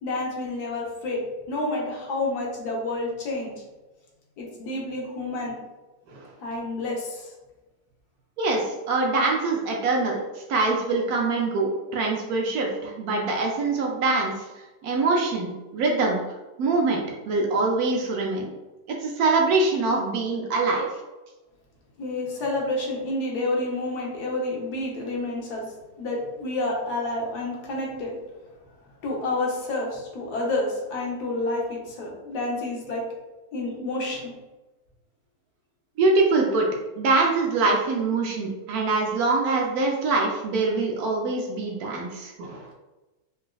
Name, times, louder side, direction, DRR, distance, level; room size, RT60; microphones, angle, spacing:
voice 1, 0.0-3.5 4.4-5.5 6.4-7.3 22.0-25.7 26.0-28.1 29.0-33.0 33.5-34.3, left 2 dB, 70° left, -2 dB, 1.3 m, -29 dB
voice 2, 8.4-14.3 14.8-16.2 16.6-18.5 19.0-20.9 36.0-36.7 37.0-42.7, right 3 dB, 70° right, 0 dB, 0.9 m, -24 dB
4.0 x 2.3 x 2.2 m, 1.1 s
omnidirectional pair, 1.8 m